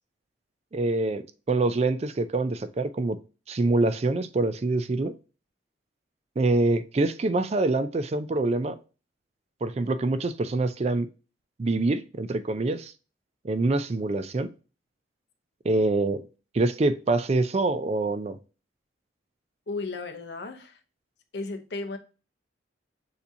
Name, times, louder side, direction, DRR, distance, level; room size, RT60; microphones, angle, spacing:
voice 1, 0.7-1.2 1.5-3.2 3.5-5.1 6.4-8.8 9.6-11.1 11.6-12.9 13.4-14.5 15.6-16.2 16.5-18.4, right 2 dB, 35° right, 0.4 m, -25 dB
voice 2, 19.7-20.8 21.3-22.0, left 3 dB, 60° left, 0.8 m, -34 dB
6.8 x 2.8 x 2.7 m
head